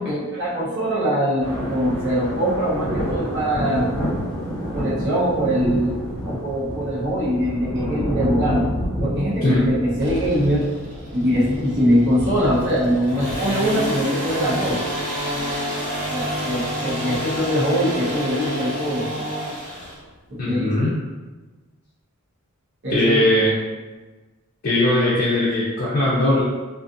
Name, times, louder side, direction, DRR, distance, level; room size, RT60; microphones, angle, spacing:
voice 1, 0.0-3.9 4.7-6.0 6.2-8.7 9.0-10.7 11.1-14.8 16.1-19.1 20.3-20.9 22.8-23.2, equal, 55° right, -7 dB, 0.9 m, -22 dB
sound 1, 1.4-15.6 16.1-16.3 17.3-17.5 18.2-18.3 19.8-19.9, equal, 20° left, 1.2 m, -29 dB
sound 2, 10.0-20.0, equal, 35° right, 1.5 m, -29 dB
sound 3, 11.1-19.5, right 6 dB, 10° right, 0.5 m, -40 dB
voice 2, 20.4-20.9 22.9-23.5 24.6-26.4, left 1 dB, 45° left, -8 dB, 0.5 m, -19 dB
2.4 x 2.4 x 2.5 m, 1.3 s
head